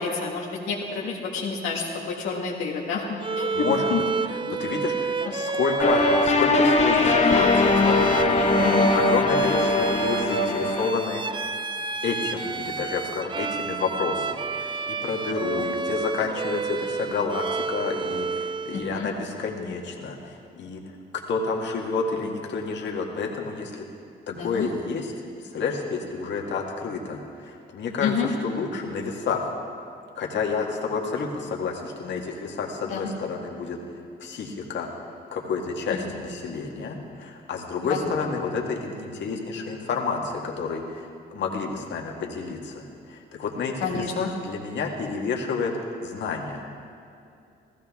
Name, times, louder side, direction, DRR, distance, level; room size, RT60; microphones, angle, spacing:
voice 1, 0.0-4.0 4.5-4.6 5.2-5.3 8.6-8.9 15.4-15.6 18.7-19.1 24.3-24.7 28.0-28.3 32.9-33.1 35.9-36.1 37.8-38.2 43.8-44.3, left 5 dB, 90° left, -2 dB, 1.5 m, -29 dB
Bowed string instrument, 3.2-19.0, right 4 dB, 25° right, 0.5 m, -30 dB
voice 2, 3.5-3.9 4.3-8.1 8.5-11.2 12.0-20.8 21.3-23.8 24.4-25.1 25.4-29.5 30.1-33.8 34.2-34.9 35.3-45.7 46.0-46.6, left 5 dB, 65° left, 0 dB, 1.7 m, -30 dB
sound 1, 5.8-10.9, left 2 dB, 35° left, 1.2 m, -20 dB
15.5 x 15.0 x 3.6 m, 2.6 s
cardioid pair, 90°, 20 cm